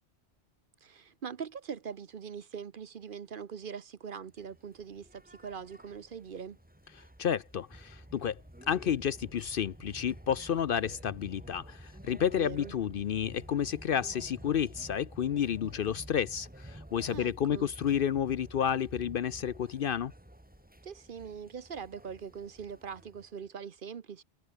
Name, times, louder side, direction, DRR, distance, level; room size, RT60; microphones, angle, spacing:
voice 1, 0.8-6.6 12.4-12.7 17.1-17.7 20.8-24.2, right 6 dB, 50° right, 0.9 m, -42 dB
sound 1, 4.3-23.5, right 1 dB, 5° right, 1.8 m, -51 dB
voice 2, 7.2-8.4 8.7-20.1, left 9 dB, 60° left, 0.7 m, -31 dB
omnidirectional pair, 1.2 m